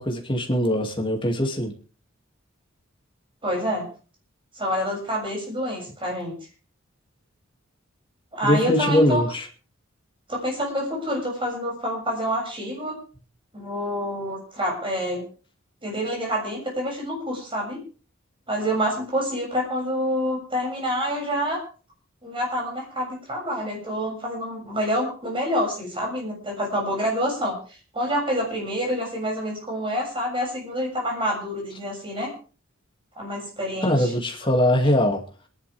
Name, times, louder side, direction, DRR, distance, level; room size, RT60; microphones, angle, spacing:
voice 1, 0.0-1.7 8.4-9.4 33.8-35.2, left 1 dB, 25° left, 1 dB, 2.5 m, -21 dB
voice 2, 3.4-3.9 4.5-6.4 8.3-9.2 10.3-12.9 13.5-15.2 15.8-17.8 18.5-21.6 22.2-27.6 27.9-32.3 33.2-34.1, equal, 25° right, -1 dB, 7.0 m, -27 dB
27.0 x 11.0 x 3.5 m, 0.38 s
head